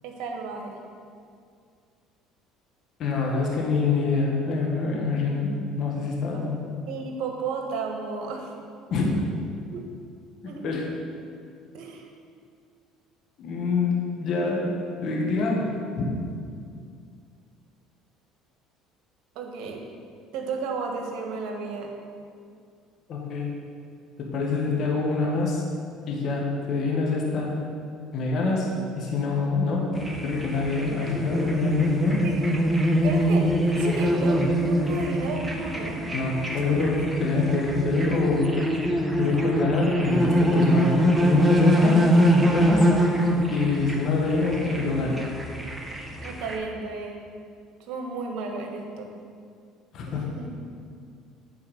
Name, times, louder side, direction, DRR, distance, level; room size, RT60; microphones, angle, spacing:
voice 1, 0.0-0.7 6.3-6.4 6.9-8.5 9.7-9.8 10.4-10.8 11.7-12.1 19.3-19.8 20.3-21.9 32.2-32.4 33.0-33.5 33.8-36.0 37.3-37.6 46.2-47.2 47.9-49.1 50.3-50.5, right 4 dB, 65° right, 2 dB, 1.4 m, -33 dB
voice 2, 3.0-6.7 8.9-9.1 10.6-10.8 13.4-16.1 23.1-23.5 24.2-25.6 26.1-27.6 28.1-32.2 36.1-38.7 39.2-42.1 42.4-42.9 43.5-45.3 49.9-50.3, left 3 dB, 55° left, -2 dB, 1.6 m, -26 dB
sound 1, 29.9-46.6, equal, 15° right, 1.4 m, -23 dB
9.2 x 4.5 x 6.4 m, 2.3 s
hypercardioid pair, 70°, 0 cm